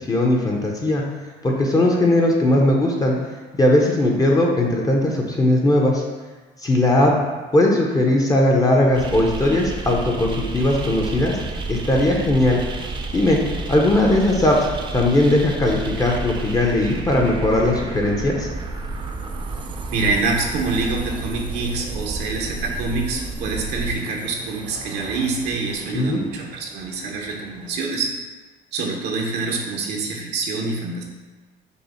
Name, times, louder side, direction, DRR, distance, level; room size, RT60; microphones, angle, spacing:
voice 1, 0.1-1.0 1.4-3.2 3.6-6.0 6.6-7.1 7.5-11.4 11.7-12.6 13.1-13.4 13.7-14.7 14.9-18.5 25.9-26.2, left 1 dB, 20° left, -1 dB, 0.6 m, -18 dB
sound 1, 8.9-27.8, right 3 dB, 30° right, 0.5 m, -31 dB
voice 2, 19.9-28.1 28.7-31.0, right 3 dB, 75° right, 0 dB, 0.7 m, -26 dB
5.4 x 2.0 x 4.2 m, 1.3 s
cardioid pair, 110°, 17 cm